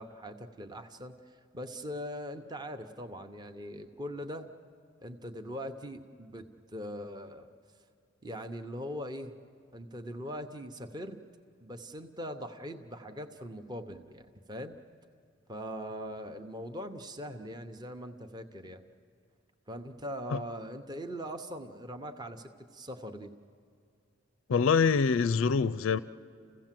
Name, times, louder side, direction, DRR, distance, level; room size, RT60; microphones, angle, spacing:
voice 1, 0.0-4.5 5.0-6.5 6.7-7.5 8.2-9.3 9.7-11.2 11.6-14.8 15.5-18.8 19.7-23.3, equal, 20° right, 0.8 m, -41 dB
voice 2, 24.5-26.0, left 5 dB, 90° left, 0.4 m, -25 dB
29.5 x 16.0 x 7.5 m
head